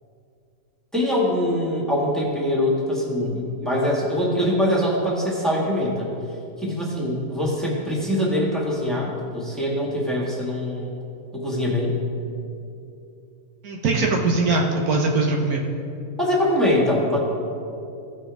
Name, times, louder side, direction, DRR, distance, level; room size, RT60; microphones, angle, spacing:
voice 1, 0.9-6.1 6.6-10.9 11.3-11.9 16.2-17.2, left 1 dB, ahead, -5 dB, 1.8 m, -23 dB
voice 2, 13.6-15.6, right 3 dB, 70° right, 0 dB, 1.4 m, -21 dB
16.0 x 6.1 x 3.5 m, 2.7 s
omnidirectional pair, 1.6 m